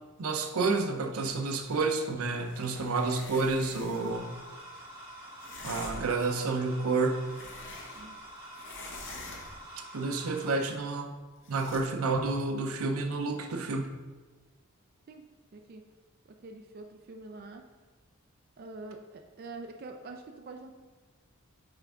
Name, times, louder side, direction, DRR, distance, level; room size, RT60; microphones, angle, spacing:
voice 1, 0.2-4.3 5.6-7.2 9.9-11.1 11.5-13.9, right 3 dB, 90° right, 5 dB, 0.6 m, -30 dB
sound 1, 2.3-4.2 5.4-6.3 6.9-8.2 8.5-9.7 11.4-11.8, left 3 dB, 55° left, 0.9 m, -46 dB
sound 2, 3.9-10.6, right 1 dB, 25° right, 1.7 m, -47 dB
voice 2, 15.1-15.8 16.3-17.7 18.6-20.7, right 3 dB, 45° right, 4 dB, 0.4 m, -45 dB
5.7 x 3.4 x 4.9 m, 1.3 s
head